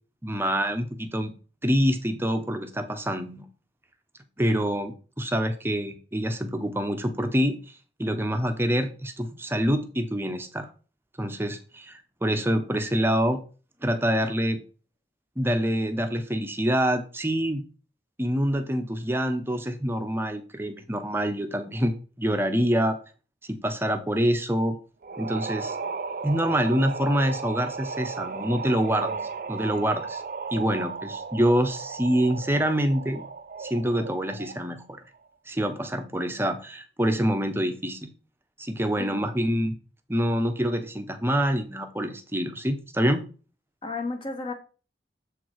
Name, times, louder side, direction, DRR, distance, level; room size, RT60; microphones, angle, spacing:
voice 1, 0.2-1.3 1.6-3.4 4.4-7.6 8.0-10.7 11.2-13.4 13.8-14.6 15.4-17.6 18.2-23.0 23.5-24.8 25.2-25.8 26.2-29.1 29.5-30.2 30.5-33.2 33.6-34.8 35.5-38.1 38.6-39.8 40.1-43.2, equal, 15° right, 0.8 m, -26 dB
sound 1, 25.0-34.8, right 4 dB, 50° right, 0.5 m, -35 dB
voice 2, 39.0-39.3 43.8-44.5, left 3 dB, 30° left, 1.2 m, -33 dB
7.3 x 4.5 x 4.6 m
head